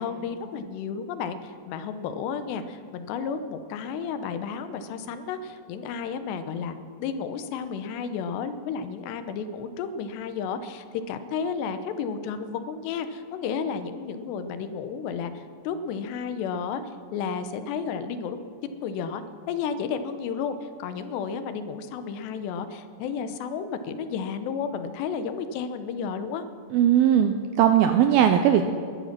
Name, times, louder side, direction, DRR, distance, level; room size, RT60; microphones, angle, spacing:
voice 1, 0.0-16.8 17.1-18.4 18.6-19.2 19.5-26.4, left 6 dB, 80° left, 10 dB, 3.0 m, -32 dB
voice 2, 26.7-28.6, right 10 dB, 90° right, 7 dB, 2.2 m, -19 dB
20.5 x 10.5 x 5.9 m, 2.3 s
omnidirectional pair, 5.0 m